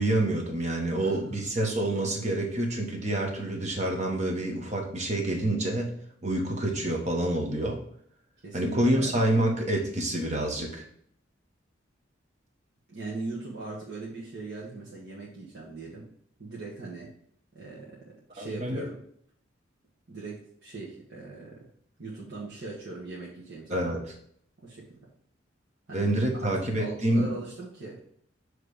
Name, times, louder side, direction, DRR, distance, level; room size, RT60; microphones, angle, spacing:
voice 1, 0.0-7.8 8.5-10.8 18.4-18.8 23.7-24.0 25.9-27.3, right 1 dB, 35° right, 1 dB, 1.3 m, -27 dB
voice 2, 1.0-1.5 8.4-9.2 12.9-16.1 16.4-17.1 17.5-19.0 20.1-21.7 22.0-24.0 24.6-25.0 25.9-26.1 26.4-28.1, right 3 dB, 55° right, -6 dB, 1.4 m, -40 dB
7.6 x 3.2 x 4.9 m, 0.63 s
head